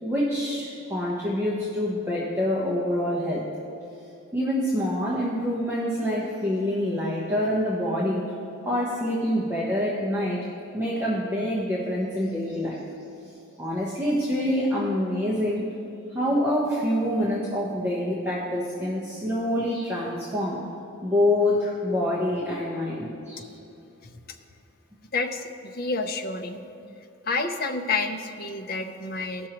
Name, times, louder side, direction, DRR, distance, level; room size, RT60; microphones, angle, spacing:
voice 1, 0.0-3.4 4.3-8.2 8.6-10.5 10.7-12.8 13.6-15.6 16.1-20.6 21.0-23.5, left 1 dB, 10° right, -7 dB, 0.9 m, -26 dB
voice 2, 24.0-24.4 25.1-26.6 27.3-29.5, left 3 dB, 45° left, 5 dB, 0.6 m, -29 dB
17.5 x 6.2 x 3.0 m, 2.8 s
head